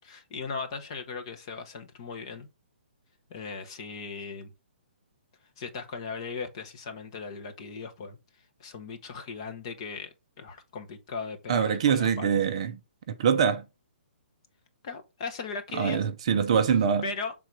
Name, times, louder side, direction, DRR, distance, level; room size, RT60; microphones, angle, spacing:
voice 1, 0.0-2.5 3.3-4.5 5.6-8.2 8.6-12.4 14.8-16.1 17.0-17.3, left 5 dB, 25° left, 0.8 m, -38 dB
voice 2, 11.5-12.8 13.1-13.6 15.7-17.0, right 7 dB, 30° right, 0.5 m, -24 dB
6.6 x 3.7 x 4.6 m
hypercardioid pair, 180°, 6 cm